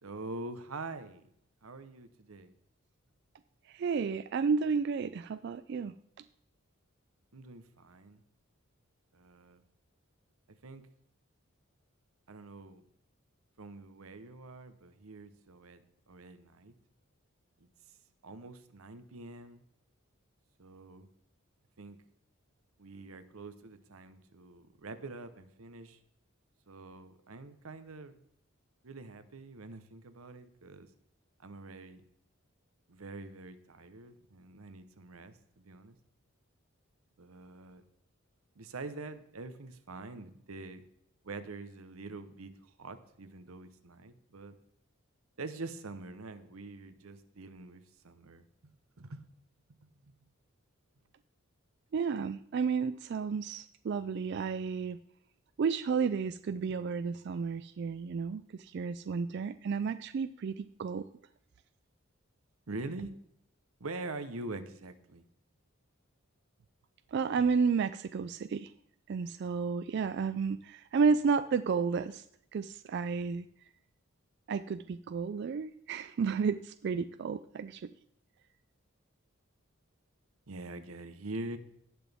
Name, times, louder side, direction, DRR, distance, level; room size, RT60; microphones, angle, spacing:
voice 1, 0.0-1.2 1.6-2.5 7.3-8.2 9.1-9.6 10.6-10.8 12.3-12.8 13.6-16.7 18.2-19.6 20.6-21.1 21.8-22.0 22.8-26.0 26.7-28.1 28.8-30.9 31.4-32.0 32.9-36.0 37.2-37.8 38.6-40.8 41.2-44.6 45.4-49.3 49.8-50.0 62.7-63.1 63.8-65.2 80.5-81.6, right 2 dB, 90° right, 11 dB, 0.9 m, -45 dB
voice 2, 3.7-5.9 51.9-55.0 55.6-61.0 67.1-68.7 69.1-72.2 72.5-73.5 74.5-77.8, right 5 dB, 50° right, 12 dB, 0.3 m, -32 dB
18.0 x 6.1 x 3.5 m, 0.71 s
head